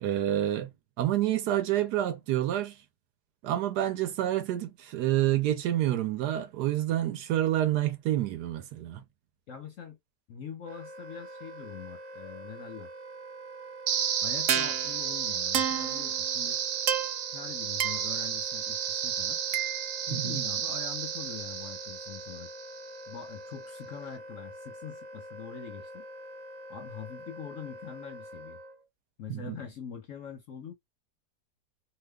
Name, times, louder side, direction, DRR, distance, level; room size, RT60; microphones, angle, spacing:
voice 1, 0.0-2.8 3.4-9.0 20.1-20.4 29.3-29.6, right 13 dB, 75° right, 1.1 m, -28 dB
voice 2, 9.5-10.0 10.3-12.9 14.2-16.6 17.3-19.4 20.1-22.5 23.1-26.1 26.7-28.6 29.2-30.7, left 7 dB, 60° left, 0.9 m, -43 dB
Wind instrument woodwind instrument, 10.6-28.8, right 1 dB, 50° right, 1.1 m, -45 dB
sound 1, 13.9-22.9, right 9 dB, 90° right, 0.6 m, -31 dB
2.9 x 2.3 x 3.4 m
omnidirectional pair, 1.9 m